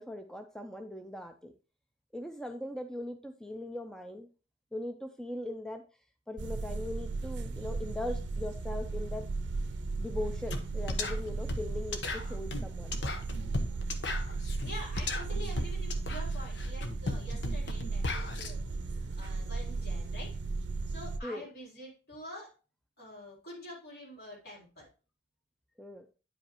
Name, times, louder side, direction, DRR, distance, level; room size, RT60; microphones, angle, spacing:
voice 1, 0.0-1.5 2.1-4.3 4.7-5.8 6.3-9.3 10.0-13.0 21.2-21.5 25.8-26.0, left 1 dB, 5° left, 6 dB, 0.5 m, -40 dB
sound 1, 6.4-21.2, right 3 dB, 75° right, 0.6 m, -35 dB
sound 2, 10.5-10.6 10.9-18.5, left 3 dB, 75° left, 1.0 m, -36 dB
voice 2, 14.6-20.4 20.9-22.5 23.0-24.9, left 1 dB, 60° left, -3 dB, 3.5 m, -46 dB
9.6 x 5.1 x 2.9 m, 0.35 s
head